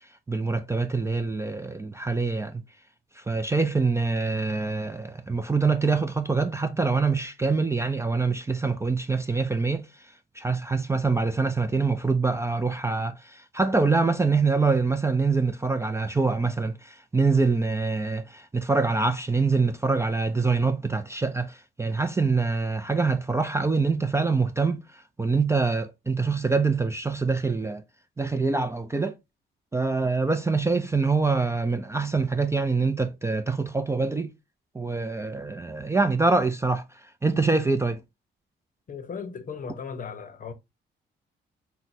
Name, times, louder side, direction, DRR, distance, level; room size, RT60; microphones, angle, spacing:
voice 1, 0.0-2.6 3.1-27.8 28.2-29.2 29.7-34.3 34.7-38.0, right 4 dB, 15° right, 0.4 m, -25 dB
voice 2, 38.9-40.5, left 6 dB, 40° left, 0.7 m, -36 dB
5.8 x 2.1 x 2.6 m
cardioid pair, 90°, 20 cm